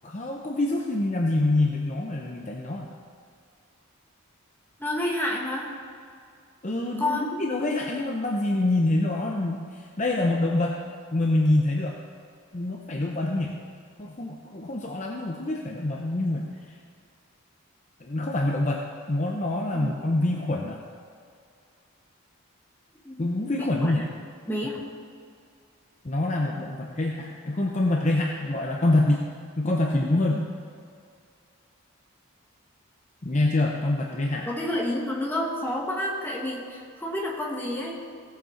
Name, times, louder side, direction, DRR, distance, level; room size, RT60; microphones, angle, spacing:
voice 1, 0.0-2.9 6.6-10.8 11.1-12.0 12.5-13.6 14.0-16.5 18.0-18.8 19.1-20.8 23.2-24.0 26.0-29.2 29.6-30.4 33.2-34.5, left 2 dB, 35° left, 0 dB, 0.7 m, -25 dB
voice 2, 4.8-5.7 7.0-7.3 19.7-19.9 23.0-23.9 24.5-24.8 30.3-30.4 34.4-38.0, left 1 dB, 10° left, -2 dB, 1.5 m, -29 dB
16.5 x 7.3 x 4.5 m, 2.3 s
head